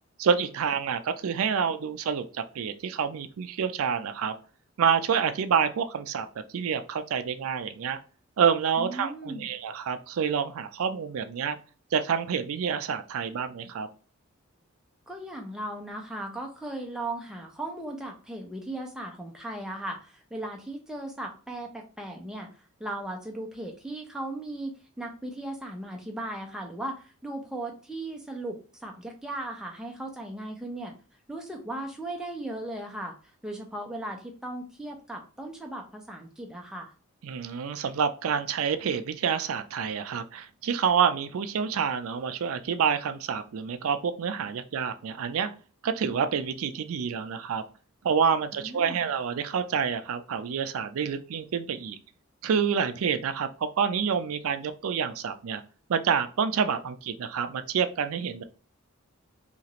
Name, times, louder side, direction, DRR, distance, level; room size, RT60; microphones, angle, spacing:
voice 1, 0.2-4.3 4.8-6.3 6.5-8.0 8.4-11.6 11.9-13.9 37.2-45.5 45.8-47.6 48.0-52.0 52.4-55.6 55.9-58.4, right 7 dB, 75° right, 9 dB, 0.4 m, -28 dB
voice 2, 8.8-9.5 15.1-22.5 22.8-30.9 31.3-33.1 33.4-36.9 48.5-49.0, right 1 dB, 5° right, 1 dB, 0.5 m, -37 dB
2.9 x 2.4 x 2.8 m, 0.38 s
head